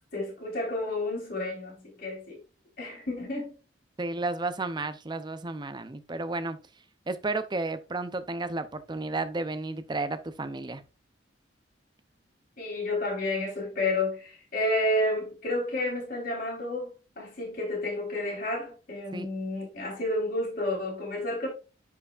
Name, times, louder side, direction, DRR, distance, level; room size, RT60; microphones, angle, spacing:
voice 1, 0.1-2.4 2.8-3.5 12.6-21.5, left 1 dB, 50° left, 3.7 m, -31 dB
voice 2, 4.0-6.6 7.1-10.8 19.1-19.3, right 3 dB, 25° right, 0.5 m, -32 dB
9.9 x 4.7 x 2.4 m
head